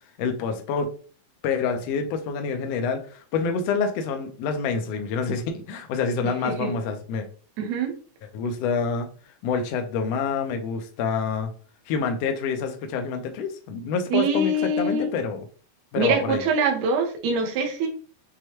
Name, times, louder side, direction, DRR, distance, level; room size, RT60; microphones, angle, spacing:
voice 1, 0.2-0.9 1.4-7.3 8.3-9.1 9.4-11.5 11.9-15.5 15.9-16.4, left 5 dB, 75° left, 5 dB, 1.5 m, -27 dB
voice 2, 7.6-7.9 14.1-15.1 16.0-17.9, right 3 dB, 70° right, 2 dB, 2.0 m, -24 dB
6.3 x 2.2 x 2.9 m, 0.40 s
omnidirectional pair, 3.5 m